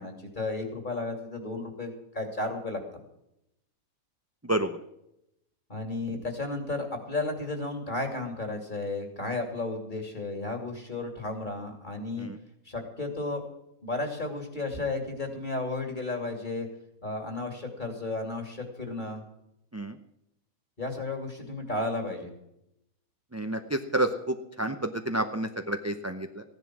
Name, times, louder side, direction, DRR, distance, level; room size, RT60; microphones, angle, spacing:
voice 1, 0.0-2.8 5.7-12.3 12.6-13.5 13.8-16.7 17.0-19.2 20.8-22.3, left 2 dB, 35° left, 4 dB, 2.8 m, -33 dB
voice 2, 4.4-4.8 12.2-12.4 19.7-20.0 23.3-26.4, right 1 dB, 15° right, 7 dB, 0.5 m, -30 dB
15.5 x 10.5 x 6.1 m, 0.80 s
omnidirectional pair, 1.5 m